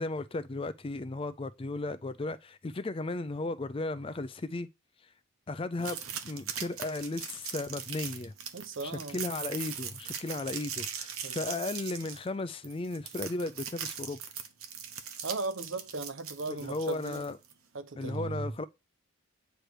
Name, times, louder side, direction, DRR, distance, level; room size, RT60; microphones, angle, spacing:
voice 1, 0.0-4.7 5.5-6.0 6.2-8.3 8.8-14.2 16.5-17.4 18.0-18.6, left 2 dB, 25° left, 0.4 m, -35 dB
sound 1, 5.8-17.5, right 8 dB, 80° right, 1.0 m, -40 dB
voice 2, 8.5-9.2 11.2-11.5 15.2-17.2 17.7-18.5, right 3 dB, 60° right, 0.8 m, -37 dB
9.2 x 3.3 x 6.2 m
head